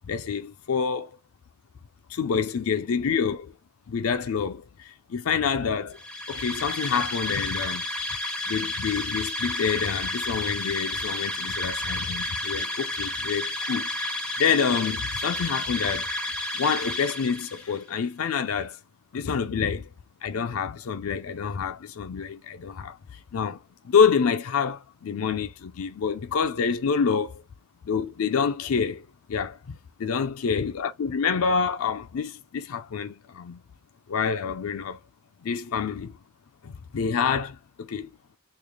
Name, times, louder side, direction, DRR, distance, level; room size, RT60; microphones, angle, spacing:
voice 1, 0.1-1.1 2.1-3.5 3.9-4.6 5.1-6.0 6.3-7.8 8.5-13.9 14.4-16.1 16.6-18.8 19.1-19.9 20.2-22.9 23.3-23.6 23.9-27.4 27.9-29.0 29.3-33.6 34.1-35.0 35.4-36.1 36.6-37.6 37.9-38.1, left 6 dB, 85° left, 0.4 m, -27 dB
sound 1, 5.9-17.8, left 1 dB, 5° left, 0.4 m, -31 dB
3.2 x 2.3 x 3.6 m
head